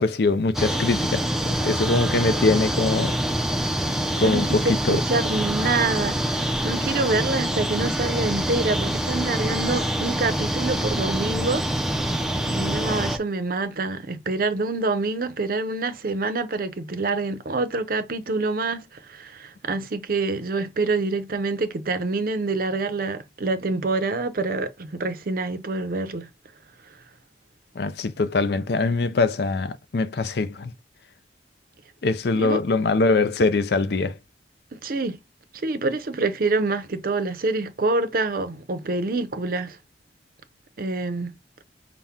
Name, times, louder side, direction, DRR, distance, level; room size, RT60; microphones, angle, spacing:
voice 1, 0.0-3.1 4.2-5.0 27.8-30.7 32.0-34.2, left 3 dB, 60° left, 0.5 m, -23 dB
sound 1, 0.5-13.2, right 1 dB, ahead, 0.4 m, -25 dB
voice 2, 4.2-11.6 12.5-26.3 32.4-32.6 34.7-35.2 35.5-39.8 40.8-41.4, right 3 dB, 50° right, 0.6 m, -26 dB
5.7 x 2.1 x 3.5 m
head